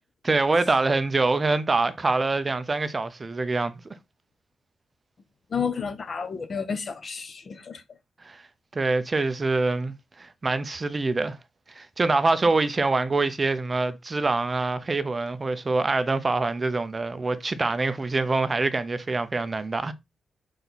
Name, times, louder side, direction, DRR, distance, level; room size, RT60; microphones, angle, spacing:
voice 1, 0.2-3.8 8.2-8.4 8.7-11.4 11.7-19.9, right 3 dB, 25° right, 0.6 m, -25 dB
voice 2, 5.5-7.8, left 6 dB, 40° left, 0.8 m, -31 dB
6.4 x 4.0 x 4.0 m
wide cardioid pair, 160°, 0 cm